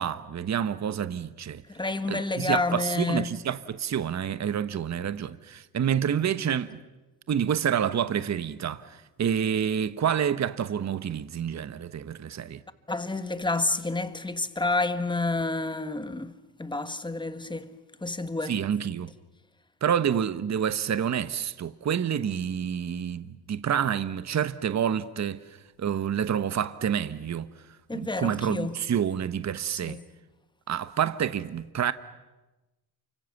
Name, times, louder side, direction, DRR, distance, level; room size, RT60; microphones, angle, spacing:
voice 1, 0.0-1.6 2.1-6.8 7.3-12.6 18.5-19.1 19.8-25.4 25.8-27.5 27.9-30.0 30.7-31.9, right 8 dB, 40° right, 1.1 m, -28 dB
voice 2, 1.7-3.3 12.9-16.3 16.6-17.7 18.0-18.6 27.9-28.8 29.8-30.1, left 3 dB, 10° left, 1.6 m, -29 dB
28.5 x 25.5 x 7.2 m
cardioid pair, 85°, 42 cm